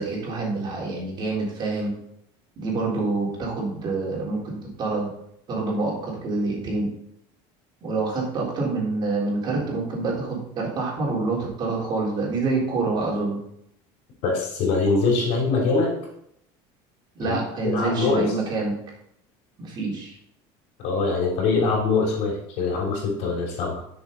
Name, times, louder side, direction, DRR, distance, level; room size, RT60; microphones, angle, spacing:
voice 1, 0.0-1.9 2.6-5.1 5.5-6.9 7.8-13.4 17.1-18.8 19.6-20.2, right 3 dB, 35° right, -3 dB, 3.9 m, -27 dB
voice 2, 14.2-15.9 17.2-18.3 20.8-23.8, left 4 dB, 65° left, -1 dB, 3.5 m, -23 dB
10.5 x 6.8 x 4.0 m, 0.73 s
cardioid pair, 145°, 13 cm